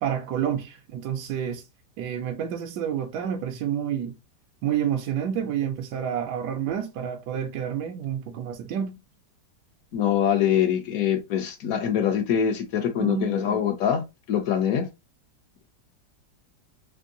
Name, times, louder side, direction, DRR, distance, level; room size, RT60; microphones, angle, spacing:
voice 1, 0.0-1.6 2.0-4.1 4.6-9.0 13.0-13.6, right 9 dB, 75° right, 1.1 m, -29 dB
voice 2, 9.9-14.0 14.3-14.9, left 9 dB, 65° left, 0.9 m, -24 dB
3.6 x 3.1 x 2.6 m
omnidirectional pair, 1.9 m